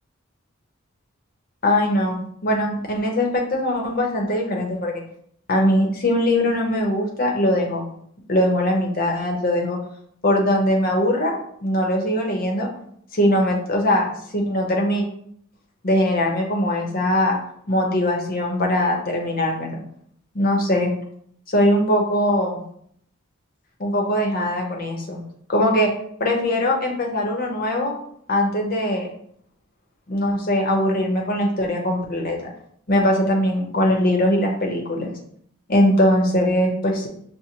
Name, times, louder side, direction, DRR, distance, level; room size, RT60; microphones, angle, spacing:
voice 1, 1.6-5.0 5.5-7.9 8.3-9.8 10.2-12.7 13.1-15.0 15.8-17.4 17.7-19.8 20.3-20.9 21.5-22.6 23.8-25.2 25.5-25.9 26.2-27.9 28.3-29.1 30.1-32.5 32.9-35.1 35.7-37.1, left 1 dB, 40° left, 0 dB, 0.7 m, -21 dB
6.2 x 2.1 x 2.9 m, 0.67 s
head